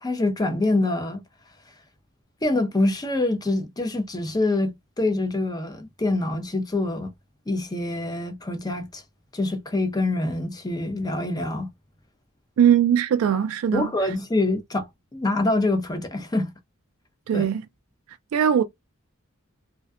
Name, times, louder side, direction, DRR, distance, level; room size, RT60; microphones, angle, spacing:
voice 1, 0.0-1.2 2.4-7.1 7.5-9.0 9.3-11.7 13.7-16.5 17.3-17.4, left 2 dB, 20° left, 0.5 m, -25 dB
voice 2, 12.6-13.9 17.3-17.6 18.3-18.6, right 9 dB, 75° right, 0.3 m, -20 dB
2.5 x 2.1 x 2.3 m
head